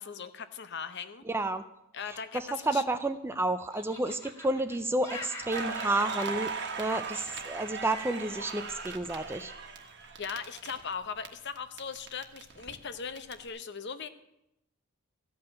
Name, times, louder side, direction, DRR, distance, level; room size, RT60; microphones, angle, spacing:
voice 1, 0.0-1.3 1.9-2.8 10.2-14.1, left 6 dB, 50° left, 11 dB, 0.7 m, -39 dB
voice 2, 1.3-1.6 2.3-6.5 6.8-9.5, right 2 dB, 10° right, 10 dB, 0.3 m, -30 dB
Laughter, 3.0-3.3 3.7-8.1, left 1 dB, 10° left, 1.6 m, -46 dB
Crackle, 5.4-11.3 11.6-13.3, right 5 dB, 50° right, 1.4 m, -38 dB
14.5 x 5.7 x 8.8 m, 0.85 s
head